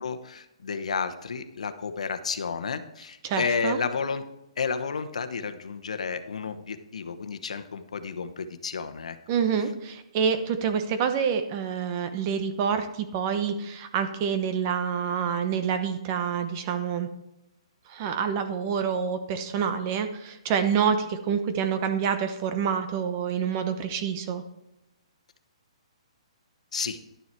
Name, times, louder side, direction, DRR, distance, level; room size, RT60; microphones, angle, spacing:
voice 1, 0.0-4.3 4.6-9.2 26.7-27.0, left 5 dB, 85° left, 9 dB, 1.0 m, -31 dB
voice 2, 3.2-3.8 9.3-17.1 17.9-24.4, right 7 dB, 25° right, 8 dB, 0.9 m, -27 dB
11.5 x 7.1 x 4.6 m, 0.89 s
hypercardioid pair, 170°, 3 cm